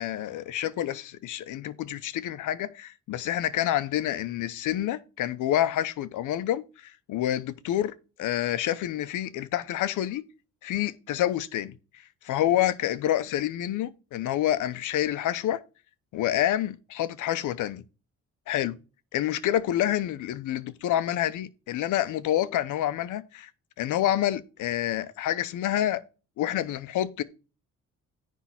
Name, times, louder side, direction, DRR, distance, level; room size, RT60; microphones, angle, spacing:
voice 1, 0.0-10.2 10.6-11.8 12.2-15.6 16.1-17.8 18.5-18.8 19.1-23.5 23.8-26.0 26.4-27.2, left 12 dB, 80° left, 0.9 m, -28 dB
10.0 x 3.7 x 7.3 m
cardioid pair, 90°, 30 cm